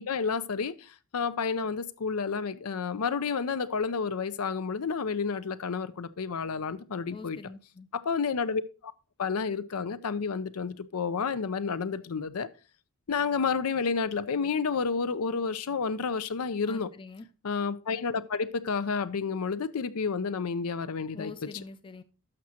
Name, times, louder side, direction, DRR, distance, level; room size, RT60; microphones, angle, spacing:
voice 1, 0.0-7.4 7.9-8.9 9.2-12.5 13.1-16.9 17.4-21.3, left 5 dB, 80° left, 0.6 m, -30 dB
voice 2, 7.1-7.9 16.6-17.3 21.1-22.0, left 4 dB, 25° left, 0.5 m, -44 dB
12.0 x 6.2 x 2.8 m
head